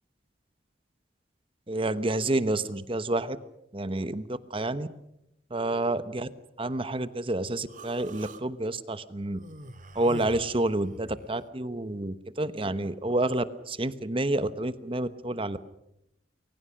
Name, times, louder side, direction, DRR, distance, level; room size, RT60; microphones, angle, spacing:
voice 1, 1.7-3.4 3.7-4.9 5.5-6.3 6.6-9.4 9.9-15.6, right 2 dB, 30° right, 13 dB, 1.0 m, -29 dB
Human voice, 7.7-8.4 9.3-11.3, right 1 dB, 45° right, 1.7 m, -43 dB
29.5 x 22.0 x 6.4 m, 0.84 s
head